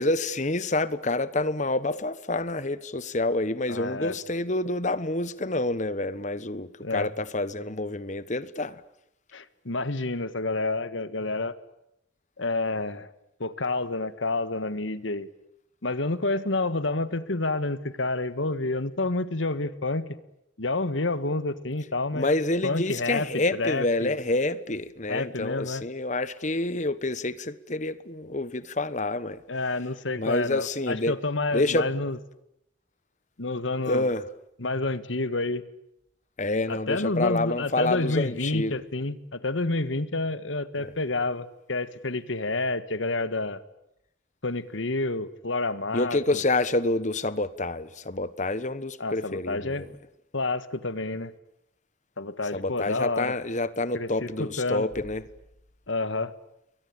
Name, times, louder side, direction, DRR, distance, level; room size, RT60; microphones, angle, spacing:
voice 1, 0.0-8.8 22.1-29.4 30.2-31.1 31.5-31.9 33.9-34.2 36.4-38.7 40.8-40.9 45.9-49.9 52.5-55.2, left 2 dB, 40° left, 1.3 m, -28 dB
voice 2, 3.7-4.2 6.8-7.1 9.3-11.5 12.4-13.1 13.4-15.3 15.8-20.1 20.6-22.3 22.6-23.3 23.5-24.2 25.1-25.8 29.5-32.2 33.4-34.1 34.6-35.6 36.7-43.6 44.4-46.4 49.0-49.9 50.3-51.3 52.2-53.4 53.9-54.9 55.9-56.3, left 2 dB, 80° left, 1.6 m, -29 dB
29.0 x 22.5 x 8.9 m
head